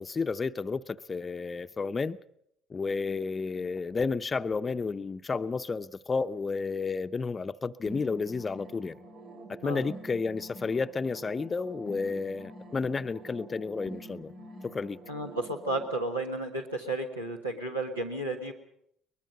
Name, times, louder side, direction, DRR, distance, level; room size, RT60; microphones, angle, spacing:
voice 1, 0.0-2.2 2.7-9.0 9.5-14.3 14.6-15.0, left 4 dB, 30° left, 0.7 m, -31 dB
sound 1, 7.9-15.8, right 1 dB, 65° right, 4.7 m, -46 dB
voice 2, 15.1-18.5, right 2 dB, 90° right, 1.4 m, -33 dB
23.0 x 20.5 x 5.4 m
figure-of-eight pair, 55°, 0 cm